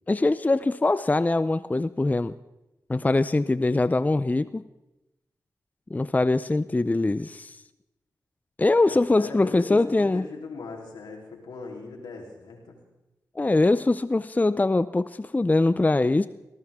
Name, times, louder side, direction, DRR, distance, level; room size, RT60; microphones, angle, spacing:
voice 1, 0.1-2.3 2.9-4.6 5.9-7.6 8.6-10.2 13.4-16.3, left 2 dB, 20° left, 15 dB, 0.5 m, -22 dB
voice 2, 8.8-12.8, left 4 dB, 85° left, 1 dB, 3.6 m, -40 dB
19.0 x 19.0 x 3.7 m, 0.97 s
cardioid pair, 50°, 7 cm